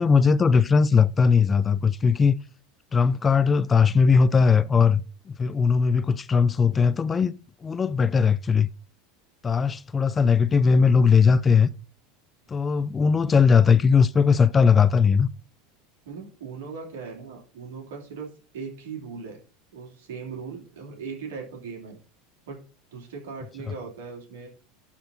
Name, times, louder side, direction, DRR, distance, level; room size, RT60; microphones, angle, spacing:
voice 1, 0.0-2.4 2.9-7.3 7.6-8.7 9.4-11.7 12.5-15.3, left 5 dB, 25° left, 0.4 m, -19 dB
voice 2, 16.0-19.4 19.7-22.0 22.5-22.6 22.9-24.5, right 5 dB, 75° right, 2.8 m, -38 dB
11.5 x 4.3 x 4.0 m
hypercardioid pair, 85°, 0 cm